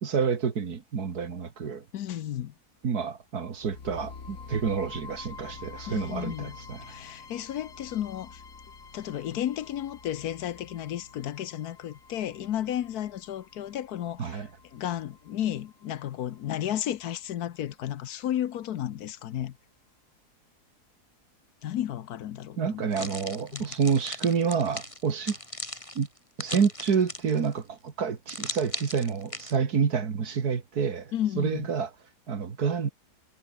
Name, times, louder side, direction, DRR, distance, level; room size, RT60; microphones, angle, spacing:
voice 1, 0.0-1.8 2.8-6.9 14.2-14.5 22.6-25.4 26.0-26.1 26.4-31.9 32.3-32.9, right 6 dB, 70° right, 2.4 m, -28 dB
voice 2, 1.9-2.5 5.9-6.6 6.8-8.4 8.9-14.4 14.7-19.5 21.6-23.1 23.5-23.7 31.1-31.7, left 11 dB, 75° left, 1.3 m, -33 dB
Realizing the Realization, 3.6-17.6, left 5 dB, 55° left, 2.5 m, -48 dB
sound 1, 22.9-27.5 28.3-29.6, left 1 dB, 20° left, 5.1 m, -38 dB
omnidirectional pair, 1.7 m